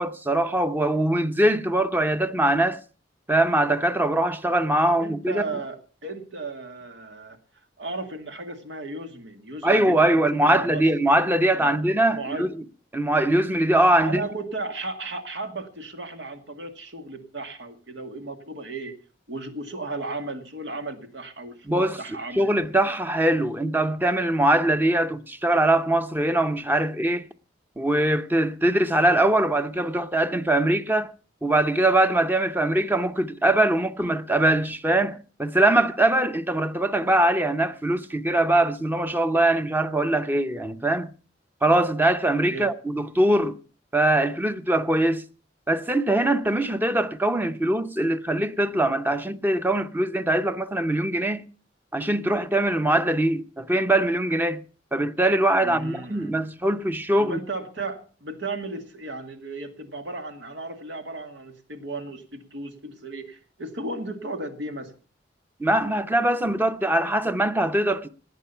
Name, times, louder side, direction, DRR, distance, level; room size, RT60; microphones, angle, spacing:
voice 1, 0.0-2.8 3.3-5.6 9.6-12.6 12.9-14.3 21.7-22.0 22.3-27.3 27.8-31.1 31.4-41.1 41.6-43.6 43.9-45.2 45.7-51.5 51.9-54.6 54.9-57.4 65.6-68.1, right 1 dB, 10° right, 0.7 m, -22 dB
voice 2, 4.9-7.4 7.8-10.9 11.6-11.8 12.1-12.5 14.0-18.9 19.3-22.6 42.5-42.7 55.6-56.3 57.2-64.9, right 2 dB, 90° right, 2.1 m, -35 dB
18.5 x 9.2 x 5.6 m
head